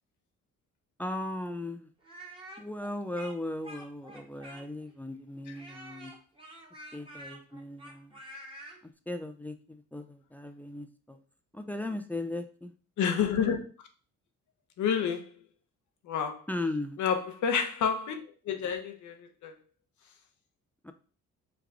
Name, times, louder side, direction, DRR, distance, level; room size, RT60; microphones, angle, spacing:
voice 1, 1.0-1.9 2.6-6.1 6.9-8.2 8.8-11.2 11.5-12.7 16.5-17.0 20.8-20.9, left 1 dB, 5° left, 0.4 m, -37 dB
Speech, 2.0-4.9 5.5-8.8, right 1 dB, 15° right, 1.2 m, -47 dB
voice 2, 13.0-13.9 14.8-15.4 16.0-16.4 17.0-19.6, left 7 dB, 70° left, 0.8 m, -30 dB
4.9 x 2.3 x 3.6 m
cardioid pair, 90°, 30 cm